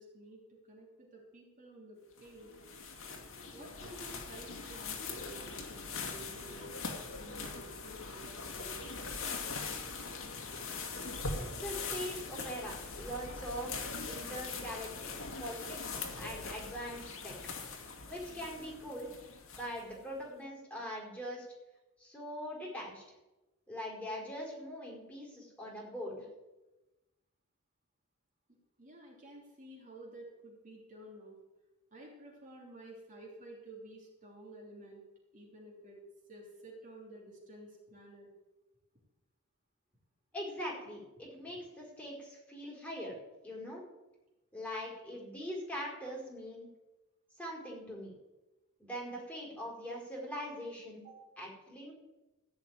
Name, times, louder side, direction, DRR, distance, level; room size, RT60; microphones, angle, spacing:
voice 1, 0.0-2.5 3.5-5.3 5.7-6.6 6.9-8.9 28.8-31.4 31.9-35.0 35.3-36.0 36.3-38.3 51.0-51.2, right 1 dB, 35° right, -3 dB, 3.2 m, -52 dB
sound 1, 2.2-20.0, left 4 dB, 65° left, 2.2 m, -42 dB
voice 2, 11.4-14.9 15.4-17.3 18.1-19.1 19.5-21.5 22.0-23.0 23.7-26.3 40.3-43.1 43.4-43.8 44.5-46.7 47.4-48.1 48.8-51.1 51.4-51.9, equal, 5° left, -4 dB, 4.7 m, -42 dB
15.5 x 5.8 x 9.5 m, 1.1 s
head